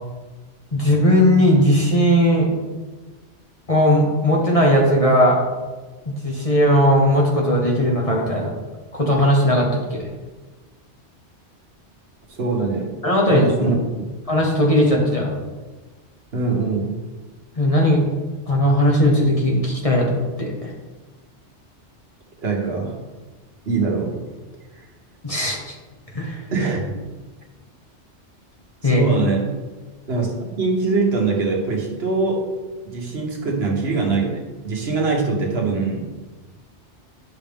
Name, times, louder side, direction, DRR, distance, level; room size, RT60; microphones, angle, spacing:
voice 1, 0.7-2.5 3.7-5.4 6.1-8.5 8.9-10.1 13.0-13.7 14.3-15.3 17.6-18.0 18.5-20.7 25.2-25.7 26.1-26.4 28.8-29.0, equal, 30° left, -2 dB, 1.3 m, -18 dB
voice 2, 12.3-13.0 13.3-13.8 16.3-17.0 22.4-23.0 23.6-24.2 24.8-24.9 26.5-26.8 28.8-29.5 30.1-32.5 32.8-36.1, right 3 dB, 65° right, 0 dB, 1.4 m, -23 dB
9.6 x 6.1 x 3.5 m, 1.3 s
omnidirectional pair, 1.2 m